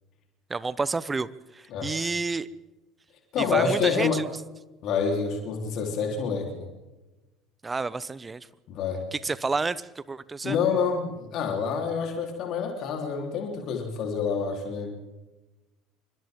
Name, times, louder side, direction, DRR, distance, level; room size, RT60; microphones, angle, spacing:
voice 1, 0.5-2.5 3.4-4.3 7.6-8.5 9.1-10.6, right 4 dB, 20° right, 17 dB, 1.1 m, -30 dB
voice 2, 1.7-2.2 3.3-4.2 4.8-6.7 8.7-9.0 10.4-14.9, left 6 dB, 55° left, 1 dB, 4.1 m, -27 dB
29.0 x 25.0 x 3.9 m, 1.1 s
figure-of-eight pair, 65°, 0 cm